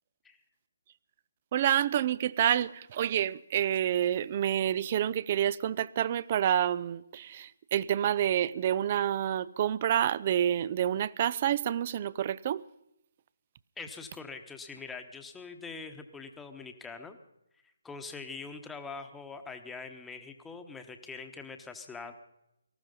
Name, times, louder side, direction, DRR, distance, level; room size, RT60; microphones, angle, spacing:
voice 1, 1.5-12.6, right 10 dB, 35° right, 0.5 m, -28 dB
voice 2, 13.8-17.2 17.8-22.1, left 4 dB, 5° left, 1.1 m, -43 dB
19.0 x 13.5 x 5.4 m
figure-of-eight pair, 150°, 0 cm